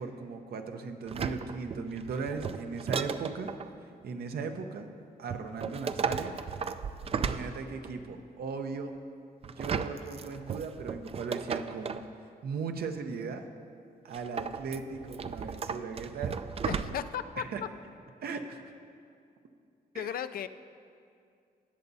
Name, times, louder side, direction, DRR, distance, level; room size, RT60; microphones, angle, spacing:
voice 1, 0.0-3.5 3.8-6.4 7.1-9.0 9.5-12.0 12.4-13.5 14.0-16.4 17.4-17.6 18.2-18.7 19.9-20.2, right 5 dB, 75° right, 6 dB, 0.8 m, -38 dB
sound 1, 1.1-3.7 5.3-8.0 9.4-12.1 14.1-17.2 17.6-17.7, right 6 dB, 40° right, 0.4 m, -35 dB
voice 2, 16.6-17.4 19.9-20.5, left 9 dB, 65° left, 12 dB, 0.4 m, -35 dB
19.0 x 6.9 x 2.7 m, 2.4 s
cardioid pair, 85°, 16 cm